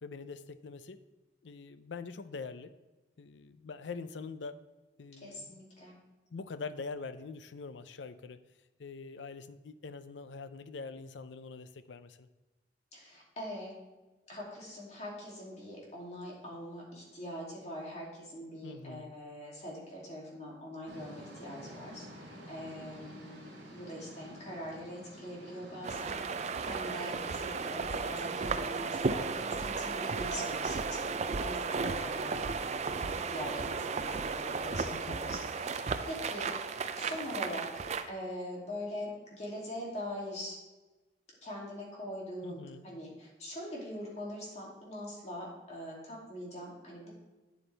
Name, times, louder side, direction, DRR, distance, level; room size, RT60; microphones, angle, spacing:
voice 1, 0.0-1.0 1.4-2.7 3.2-4.6 5.0-5.6 6.3-8.4 8.8-12.3 18.6-19.1 31.8-32.1 34.9-35.2 42.4-42.8, left 4 dB, 75° left, 11 dB, 0.5 m, -44 dB
voice 2, 5.2-6.0 12.9-13.8 14.3-40.5 41.4-47.1, equal, 35° left, -3 dB, 2.6 m, -43 dB
sound 1, 20.9-31.6, equal, 75° right, 2.7 m, -51 dB
sound 2, 25.8-38.1, right 4 dB, 35° right, 0.4 m, -34 dB
9.3 x 8.1 x 3.4 m, 1.1 s
head